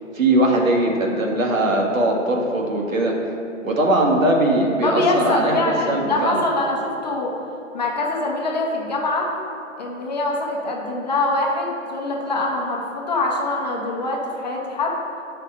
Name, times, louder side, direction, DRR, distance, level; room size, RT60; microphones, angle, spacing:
voice 1, 0.1-3.1 3.6-6.4, right 1 dB, 85° right, 0 dB, 1.7 m, -20 dB
voice 2, 4.8-7.4 7.7-9.3 9.8-15.0, left 2 dB, 35° left, -1 dB, 1.0 m, -24 dB
9.1 x 5.7 x 3.8 m, 2.9 s
hypercardioid pair, 170°, 39 cm